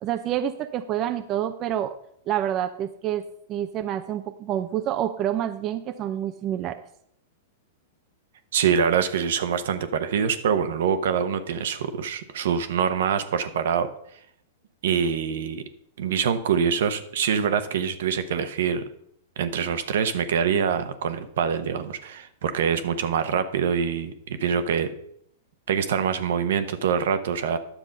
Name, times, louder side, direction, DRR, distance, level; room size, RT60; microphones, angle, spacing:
voice 1, 0.0-1.9 2.3-3.2 3.5-6.8, right 11 dB, 35° right, 8 dB, 0.6 m, -28 dB
voice 2, 8.5-13.9 14.8-15.6 16.0-18.8 19.4-24.9 25.7-27.6, right 7 dB, 70° right, 10 dB, 1.0 m, -25 dB
10.0 x 7.1 x 5.2 m, 0.71 s
hypercardioid pair, 115°, 0 cm